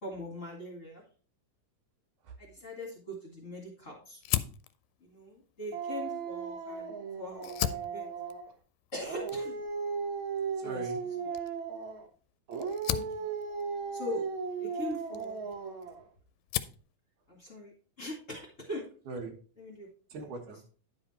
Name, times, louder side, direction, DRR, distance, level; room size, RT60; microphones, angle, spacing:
voice 1, 0.0-1.0 2.4-4.2 5.0-6.9 7.2-8.1 8.9-9.5 10.6-10.8 12.9-13.0 13.9-14.2 14.6-15.4 17.3-18.9 19.6-19.9, left 1 dB, 30° left, -2 dB, 1.7 m, -41 dB
Fire, 4.2-6.9 7.3-16.0 16.3-16.9, left 14 dB, 80° left, 1.8 m, -38 dB
Dog, 5.7-8.5 9.0-12.1 12.5-16.0, right 5 dB, 60° right, 1.4 m, -36 dB
voice 2, 10.6-11.0 12.5-13.1 19.1-19.4 20.1-20.6, right 3 dB, 85° right, 4 dB, 2.9 m, -42 dB
10.0 x 4.9 x 4.2 m, 0.39 s
omnidirectional pair, 3.5 m